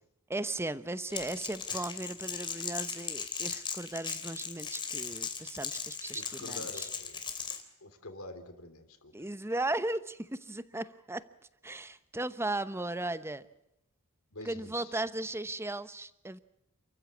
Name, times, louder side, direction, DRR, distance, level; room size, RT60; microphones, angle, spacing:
voice 1, 0.3-6.9 9.1-11.3 11.6-13.5 14.4-16.4, right 2 dB, 10° right, 13 dB, 0.9 m, -36 dB
Crackle, 1.1-7.6, left 6 dB, 20° left, 2.8 m, -38 dB
voice 2, 6.1-7.2 7.8-9.3 14.3-14.9, left 2 dB, 70° left, 8 dB, 3.3 m, -47 dB
29.0 x 15.0 x 8.4 m, 0.83 s
head